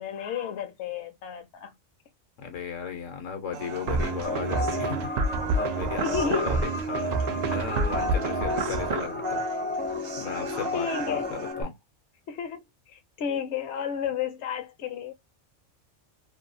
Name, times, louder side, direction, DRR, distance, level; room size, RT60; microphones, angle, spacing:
voice 1, 0.0-1.7 6.0-6.6 10.7-11.3 12.3-15.1, left 7 dB, 65° left, 0.9 m, -32 dB
voice 2, 2.4-9.4 9.8-11.8, left 6 dB, 85° left, 1.2 m, -36 dB
Human voice, 3.5-11.5, right 5 dB, 55° right, 1.0 m, -42 dB
sound 1, 3.9-9.1, right 3 dB, 80° right, 0.3 m, -28 dB
sound 2, 4.2-11.6, left 2 dB, 10° left, 0.5 m, -32 dB
2.7 x 2.3 x 2.6 m
omnidirectional pair, 1.3 m